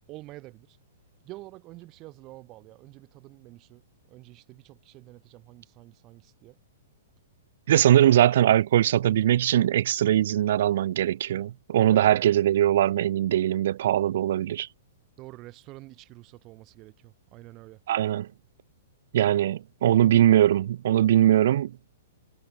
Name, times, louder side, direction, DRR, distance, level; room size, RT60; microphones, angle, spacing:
voice 1, 0.1-0.8 1.2-3.8 4.1-6.6 11.9-12.2 15.2-17.8, right 19 dB, 30° right, 2.6 m, -47 dB
voice 2, 7.7-14.7 17.9-18.3 19.1-21.7, right 12 dB, 60° right, 0.3 m, -21 dB
hypercardioid pair, 155°, 0 cm